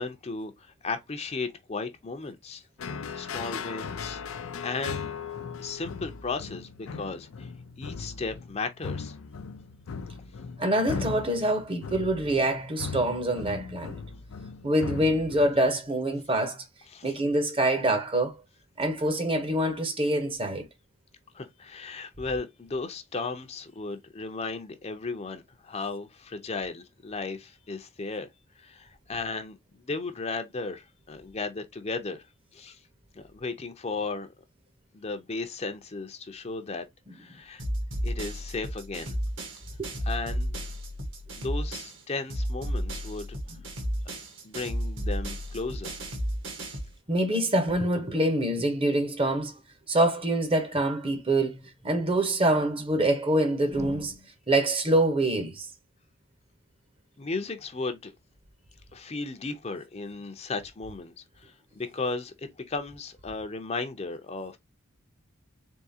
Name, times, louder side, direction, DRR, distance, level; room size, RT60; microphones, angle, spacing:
voice 1, 0.0-2.6 2.9-4.2 4.6-5.1 5.6-7.5 7.8-9.2 16.9-17.2 21.3-28.3 28.6-32.2 32.5-32.8 33.2-34.3 34.9-36.9 37.1-37.6 38.0-39.2 40.1-40.5 41.4-43.3 44.4-46.0 57.2-58.1 58.9-64.6, left 3 dB, 30° left, 0.6 m, -35 dB
sound 1, 2.8-15.9, left 5 dB, 80° left, 0.5 m, -38 dB
voice 2, 10.6-13.9 14.6-16.6 17.0-18.3 18.8-20.7 39.8-39.9 47.1-49.6 49.9-51.6 51.8-54.2 54.5-55.7, right 1 dB, 25° right, 0.8 m, -25 dB
sound 2, 37.6-42.0 42.3-46.9, equal, 60° right, 1.4 m, -33 dB
3.8 x 3.6 x 2.7 m
head